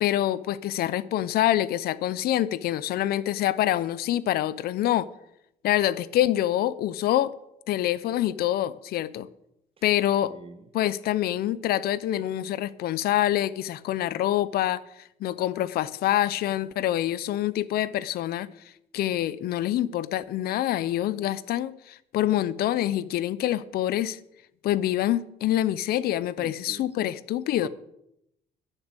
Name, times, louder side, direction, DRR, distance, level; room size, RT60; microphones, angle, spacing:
voice 1, 0.0-5.1 5.6-7.3 7.7-9.3 9.8-10.3 10.7-18.5 18.9-24.2 24.6-27.7, left 13 dB, 65° left, 0.6 m, -26 dB
voice 2, 10.2-10.7 26.4-27.1 27.6-27.7, right 5 dB, 35° right, 1.3 m, -44 dB
10.5 x 7.2 x 8.1 m
cardioid pair, 110°, 17 cm